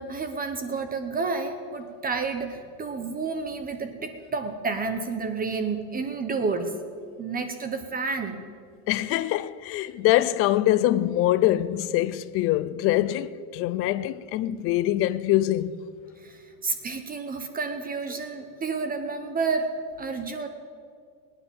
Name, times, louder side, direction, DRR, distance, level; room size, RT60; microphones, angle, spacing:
voice 1, 0.0-6.7 7.2-8.4 16.2-16.3 16.6-19.7 20.0-20.5, right 4 dB, 20° right, 0.8 m, -30 dB
voice 2, 8.9-15.8, left 14 dB, 30° left, 0.4 m, -24 dB
19.5 x 10.0 x 7.1 m
cardioid pair, 155°, 45 cm